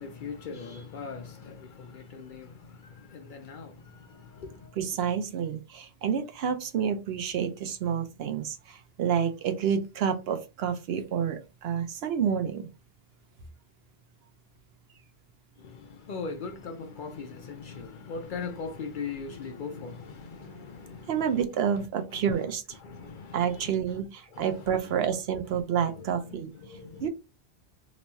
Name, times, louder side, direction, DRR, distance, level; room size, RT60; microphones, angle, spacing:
voice 1, 0.0-4.7 15.6-21.4 22.1-22.2 22.8-24.0 24.3-24.7 25.7-27.1, left 5 dB, 60° left, 0.6 m, -40 dB
voice 2, 4.8-12.7 21.1-22.8 23.3-26.5 27.0-27.1, right 8 dB, 75° right, 0.8 m, -29 dB
3.0 x 2.2 x 3.9 m
omnidirectional pair, 1.1 m